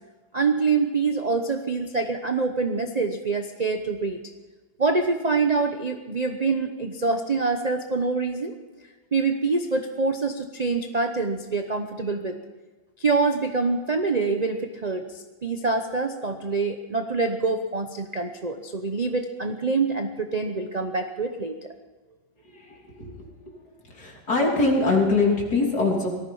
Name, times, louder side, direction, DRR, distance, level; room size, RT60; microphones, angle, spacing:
voice 1, 0.3-4.2 4.8-8.5 9.1-12.4 13.0-15.0 15.4-21.5, right 4 dB, 40° right, 5 dB, 0.5 m, -25 dB
voice 2, 22.4-23.3 23.9-26.1, left 3 dB, 55° left, -1 dB, 3.6 m, -23 dB
18.5 x 14.0 x 5.5 m, 1.2 s
omnidirectional pair, 2.1 m